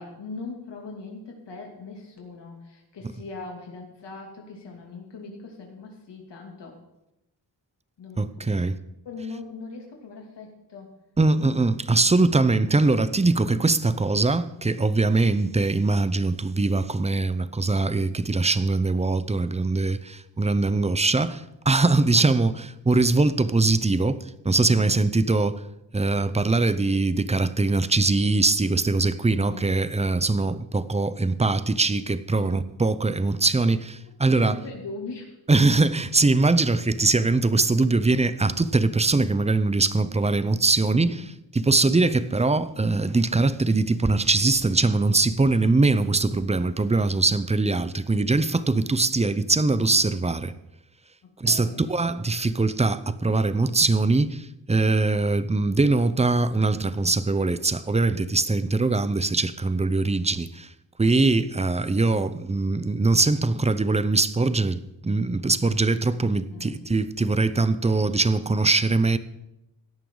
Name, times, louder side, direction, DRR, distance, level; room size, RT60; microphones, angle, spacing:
voice 1, 0.0-6.8 8.0-8.7 9.0-10.9 24.7-25.0 29.4-29.7 32.3-32.7 34.3-35.4 40.9-41.3 47.1-47.3 51.2-51.8 66.5-66.8, left 4 dB, 80° left, 2.8 m, -40 dB
voice 2, 8.2-8.8 11.2-25.6 25.9-34.6 35.5-41.2 41.5-50.5 51.4-60.7 61.0-69.2, right 3 dB, 15° right, 0.7 m, -22 dB
17.0 x 11.0 x 3.9 m
wide cardioid pair, 100°, 42 cm